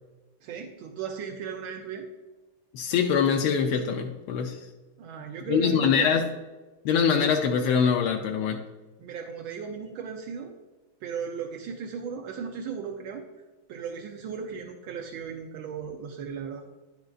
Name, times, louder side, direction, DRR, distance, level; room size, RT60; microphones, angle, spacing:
voice 1, 0.4-2.1 5.0-6.1 9.0-10.5 11.0-13.3 13.7-16.6, right 6 dB, 80° right, 2 dB, 1.4 m, -36 dB
voice 2, 2.7-4.7 5.5-6.3 6.8-8.6, left 7 dB, 90° left, 2 dB, 1.5 m, -24 dB
10.5 x 5.1 x 2.4 m, 1.2 s
omnidirectional pair, 2.3 m